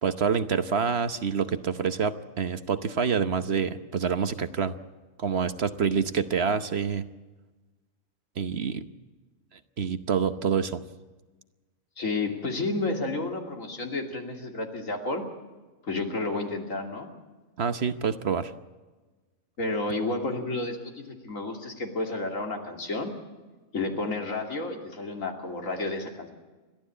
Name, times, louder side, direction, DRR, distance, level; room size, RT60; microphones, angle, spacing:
voice 1, 0.0-4.7 5.2-7.0 8.4-8.8 9.5-10.8 17.6-18.5, right 6 dB, 55° right, 11 dB, 1.1 m, -27 dB
voice 2, 12.0-15.2 15.8-17.1 19.6-20.8 21.1-23.1 23.7-26.3, left 2 dB, 75° left, 3 dB, 3.1 m, -31 dB
29.5 x 12.5 x 8.4 m, 1.3 s
omnidirectional pair, 1.4 m